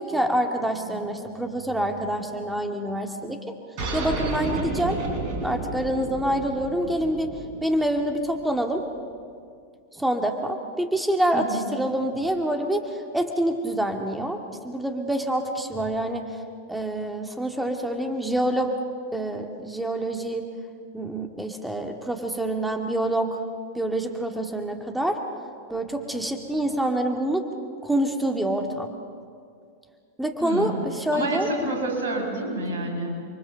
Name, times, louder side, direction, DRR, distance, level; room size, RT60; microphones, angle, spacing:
voice 1, 0.0-3.4 3.9-5.0 5.4-7.3 7.6-8.8 9.9-16.3 16.7-18.7 19.1-20.4 20.9-23.4 23.7-25.2 25.7-27.4 27.8-28.9 30.2-31.5, right 1 dB, 5° right, 4 dB, 1.9 m, -26 dB
sound 1, 3.8-8.8, right 2 dB, 40° right, 5.6 m, -32 dB
voice 2, 11.3-11.7 30.4-30.8 31.1-33.2, right 2 dB, 60° right, 1 dB, 6.4 m, -28 dB
29.5 x 23.5 x 6.9 m, 2.2 s
figure-of-eight pair, 90°, 0 cm